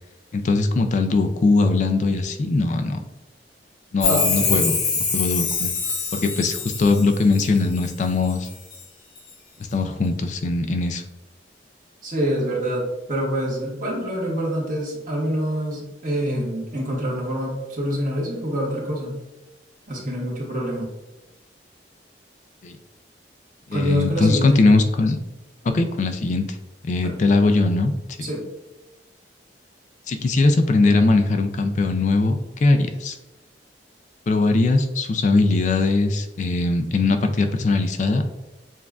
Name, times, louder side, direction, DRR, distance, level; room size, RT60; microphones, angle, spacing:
voice 1, 0.3-3.0 3.9-4.8 5.1-5.7 6.1-8.5 9.7-11.0 22.6-22.8 23.7-25.2 25.6-26.5 26.9-27.9 30.1-33.2 34.3-38.2, left 3 dB, 45° left, 6 dB, 0.3 m, -20 dB
Chime, 4.0-7.9 8.3-8.8 9.2-9.3, left 5 dB, 90° left, 1.0 m, -25 dB
voice 2, 4.0-4.8 12.0-12.8 13.1-19.2 19.9-20.9 23.7-24.6 27.0-27.2 28.2-28.4, equal, 50° right, -4 dB, 1.4 m, -26 dB
7.0 x 2.4 x 2.3 m, 1.0 s
head